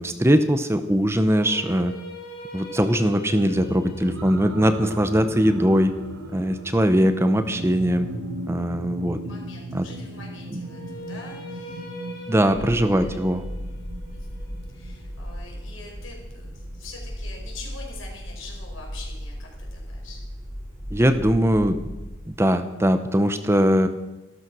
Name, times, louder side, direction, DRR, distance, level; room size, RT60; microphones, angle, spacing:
voice 1, 0.0-1.9 2.5-5.9 6.3-8.1 8.5-9.2 9.7-9.8 12.3-13.4 20.9-21.8 22.3-23.9, equal, 15° right, 10 dB, 0.7 m, -21 dB
sound 1, 1.2-7.4 10.6-16.7, right 1 dB, 50° left, 3.5 m, -42 dB
sound 2, 3.5-16.8 17.4-17.5, right 1 dB, 80° right, 1.4 m, -37 dB
voice 2, 9.2-11.9 12.6-13.2 14.1-20.2, left 3 dB, 80° left, 0 dB, 5.0 m, -44 dB
sound 3, 10.9-11.5 12.5-22.2, equal, ahead, 2.1 m, -37 dB
14.0 x 12.5 x 6.1 m, 1.0 s
head